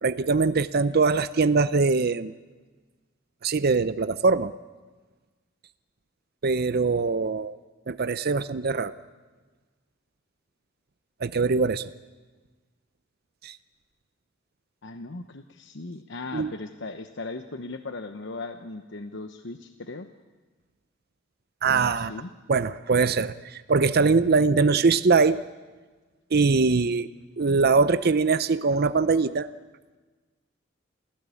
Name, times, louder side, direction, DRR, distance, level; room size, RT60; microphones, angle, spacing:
voice 1, 0.0-2.3 3.4-4.5 6.4-7.6 7.9-8.9 11.2-11.9 13.4-13.6 16.3-16.5 21.6-22.1 22.5-25.4 26.3-27.1 27.4-29.5, right 4 dB, 55° right, 13 dB, 0.6 m, -22 dB
voice 2, 14.8-20.1 21.6-22.3, left 3 dB, 65° left, 7 dB, 1.0 m, -38 dB
28.0 x 16.0 x 8.5 m, 1.3 s
head